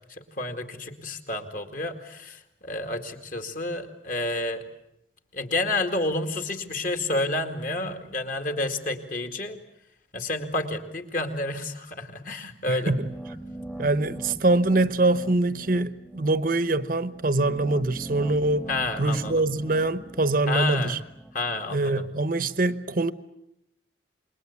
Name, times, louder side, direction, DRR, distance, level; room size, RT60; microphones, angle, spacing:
voice 1, 0.1-4.6 5.3-9.6 10.1-12.9 18.7-19.4 20.5-21.0 21.3-22.1, left 2 dB, 45° left, 2.4 m, -30 dB
voice 2, 12.7-13.1 13.8-18.7 19.0-21.0 21.7-23.1, right 2 dB, 50° right, 1.0 m, -24 dB
sound 1, 12.8-21.7, right 1 dB, 5° left, 1.2 m, -42 dB
27.5 x 22.0 x 8.4 m
head